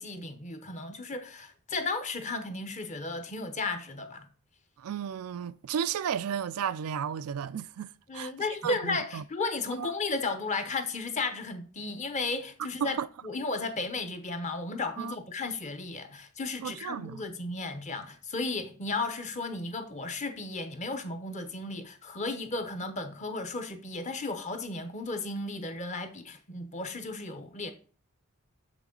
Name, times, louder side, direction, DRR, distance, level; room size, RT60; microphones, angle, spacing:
voice 1, 0.0-4.2 8.1-13.0 13.2-27.7, left 3 dB, 30° left, 0.8 m, -34 dB
voice 2, 4.8-8.3 8.6-9.2 9.8-9.9 12.8-13.1 15.0-15.2 16.6-17.2, right 8 dB, 75° right, 0.4 m, -33 dB
6.4 x 6.0 x 3.8 m
head